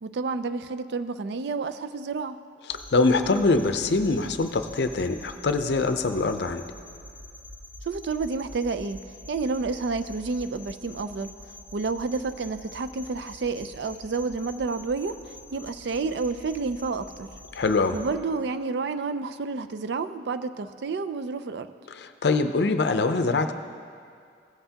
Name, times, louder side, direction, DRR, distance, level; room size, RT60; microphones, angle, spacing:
voice 1, 0.0-2.4 7.9-11.4 11.7-15.2 15.5-17.3 17.9-21.7, right 4 dB, 70° right, 11 dB, 0.4 m, -30 dB
voice 2, 2.7-6.6 17.5-18.0 22.0-23.5, left 3 dB, 65° left, 8 dB, 0.5 m, -24 dB
sound 1, 2.7-18.1, left 1 dB, 10° right, 0.7 m, -46 dB
16.0 x 7.8 x 2.8 m, 2.3 s
head